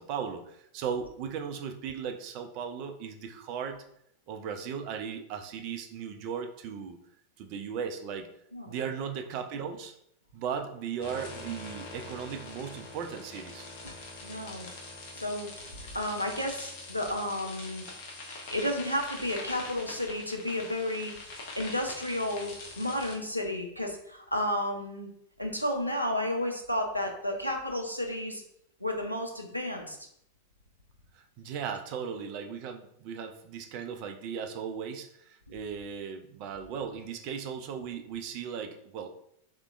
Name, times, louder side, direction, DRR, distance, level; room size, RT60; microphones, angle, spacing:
voice 1, 0.0-3.8 4.3-7.0 7.4-8.3 8.7-9.9 10.3-13.7 31.1-39.1, right 7 dB, 45° right, 5 dB, 0.4 m, -37 dB
sound 1, 11.0-23.2, left 2 dB, 50° left, 0.8 m, -44 dB
voice 2, 14.2-14.7 15.1-15.5 15.9-17.8 18.5-21.1 21.6-25.1 25.4-28.4 28.8-30.0, left 1 dB, 90° left, 2 dB, 0.5 m, -32 dB
3.4 x 2.8 x 2.4 m, 0.73 s
figure-of-eight pair, 90°, 0 cm